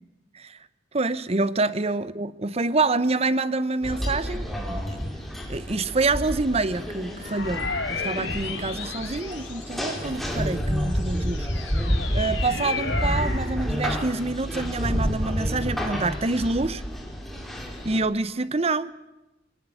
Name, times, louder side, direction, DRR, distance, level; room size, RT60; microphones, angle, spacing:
voice 1, 0.9-4.8 5.5-11.5 12.1-16.8 17.8-18.9, right 3 dB, 35° right, 0.9 m, -26 dB
sound 1, 3.8-18.0, equal, ahead, 3.7 m, -29 dB
sound 2, 7.2-10.1 10.7-13.5, left 4 dB, 85° left, 4.4 m, -33 dB
23.0 x 18.5 x 8.5 m
head